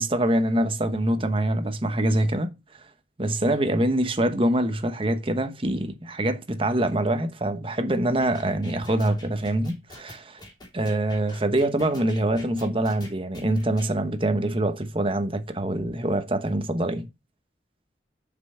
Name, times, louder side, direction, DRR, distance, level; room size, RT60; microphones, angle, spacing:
voice 1, 0.0-2.5 3.2-10.4 10.7-17.1, right 1 dB, 30° right, 1.1 m, -25 dB
sound 1, 8.2-13.9, left 1 dB, 25° left, 3.2 m, -45 dB
6.8 x 5.7 x 5.7 m
head